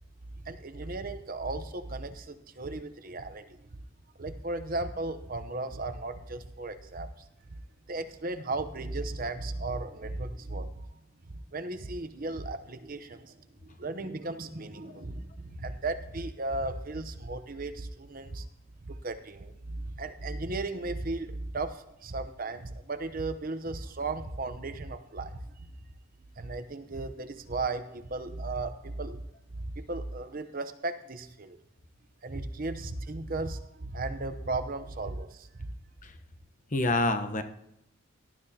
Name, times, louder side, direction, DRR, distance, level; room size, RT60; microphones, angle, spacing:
voice 1, 0.4-3.6 4.2-7.1 7.9-10.9 11.5-13.3 13.8-18.4 18.8-25.7 26.4-29.2 29.6-31.6 32.2-35.7, right 2 dB, 40° right, 9 dB, 0.8 m, -36 dB
voice 2, 36.7-37.4, left 2 dB, 35° left, 8 dB, 1.0 m, -28 dB
18.5 x 12.0 x 2.9 m, 0.82 s
head